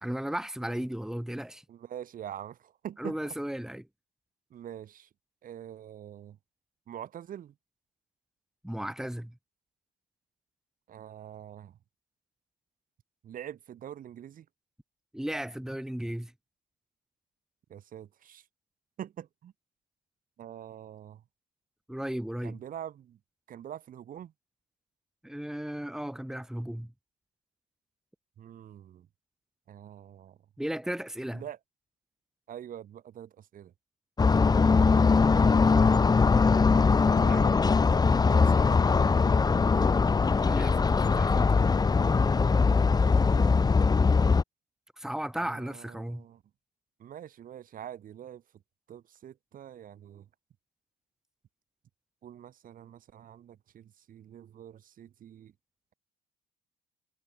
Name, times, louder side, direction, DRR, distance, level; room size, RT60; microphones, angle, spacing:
voice 1, 0.0-1.6 3.0-3.9 8.6-9.3 15.1-16.3 21.9-22.6 25.2-26.9 30.6-31.4 40.3-41.6 45.0-46.2, right 1 dB, 5° right, 5.0 m, -35 dB
voice 2, 1.7-3.3 4.5-5.1 5.4-6.4 6.9-7.5 10.9-11.8 13.2-14.5 17.7-18.4 19.0-19.5 20.4-21.2 22.4-23.2 23.5-24.3 28.4-29.1 29.7-30.4 31.3-31.6 32.5-33.7 35.4-36.2 37.1-37.6 38.1-38.8 43.1-43.4 45.4-46.4 47.0-48.4 48.9-50.3 52.2-55.5, right 10 dB, 55° right, 3.6 m, -45 dB
sound 1, 34.2-44.4, left 4 dB, 25° left, 1.4 m, -22 dB
cardioid pair, 110°, 17 cm